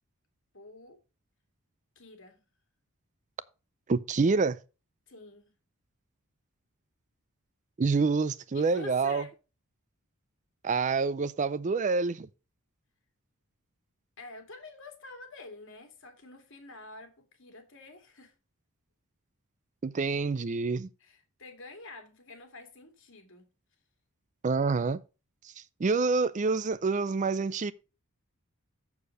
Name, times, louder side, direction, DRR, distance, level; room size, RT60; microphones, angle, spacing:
voice 1, 0.5-1.0 2.0-2.4 5.1-5.5 8.5-9.3 14.2-18.3 21.0-23.5, left 2 dB, 60° left, 2.5 m, -48 dB
voice 2, 3.9-4.6 7.8-9.2 10.6-12.3 19.8-20.9 24.4-25.0 25.8-27.7, right 4 dB, 35° right, 0.4 m, -27 dB
7.2 x 6.6 x 6.3 m
head